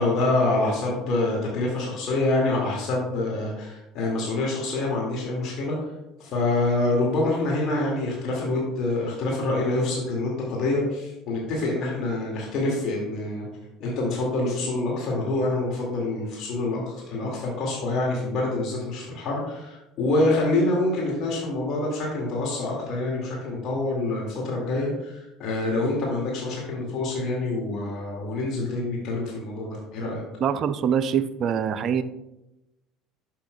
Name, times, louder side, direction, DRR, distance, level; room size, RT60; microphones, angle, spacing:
voice 1, 0.0-5.8 6.2-13.5 13.8-30.2, left 2 dB, 50° left, -3 dB, 2.1 m, -26 dB
voice 2, 30.4-32.0, right 8 dB, 45° right, 12 dB, 0.4 m, -24 dB
12.0 x 5.7 x 2.2 m, 0.96 s
figure-of-eight pair, 60°, 0 cm